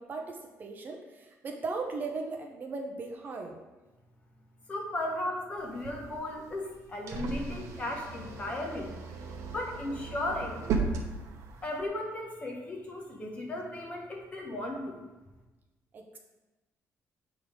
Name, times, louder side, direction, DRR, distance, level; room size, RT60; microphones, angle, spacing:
voice 1, 0.0-3.6 15.9-16.2, right 3 dB, 35° right, 2 dB, 0.7 m, -37 dB
voice 2, 4.7-8.9 9.5-10.6 11.6-15.0, left 1 dB, 25° left, 0 dB, 1.1 m, -36 dB
sound 1, 5.6-11.9, right 4 dB, 65° right, 0.9 m, -37 dB
7.8 x 3.6 x 5.0 m, 1.1 s
cardioid pair, 165°, 6 cm